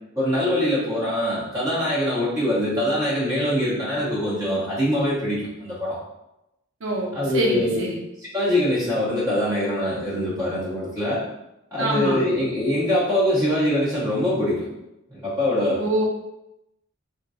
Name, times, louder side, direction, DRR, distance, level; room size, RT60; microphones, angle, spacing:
voice 1, 0.1-6.0 7.1-7.8 8.2-11.2 11.7-14.7 15.1-15.8, left 1 dB, 15° right, -10 dB, 0.8 m, -23 dB
voice 2, 6.8-8.0 11.8-12.2 15.8-16.0, right 1 dB, 65° right, -1 dB, 0.7 m, -25 dB
3.7 x 2.6 x 2.3 m, 0.89 s
head